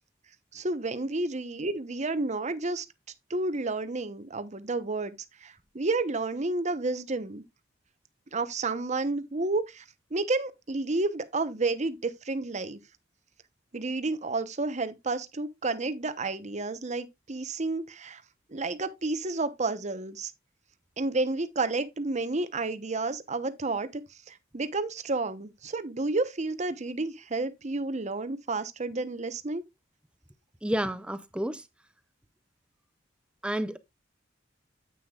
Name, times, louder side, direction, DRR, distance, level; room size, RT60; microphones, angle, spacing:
voice 1, 0.5-2.8 3.3-5.2 5.4-7.4 8.3-9.8 10.1-12.8 13.7-18.2 18.5-20.3 21.0-24.0 24.3-29.6, right 3 dB, 40° right, 0.9 m, -31 dB
voice 2, 30.6-31.6 33.4-33.8, right 1 dB, 5° right, 0.5 m, -30 dB
9.6 x 8.5 x 2.4 m
head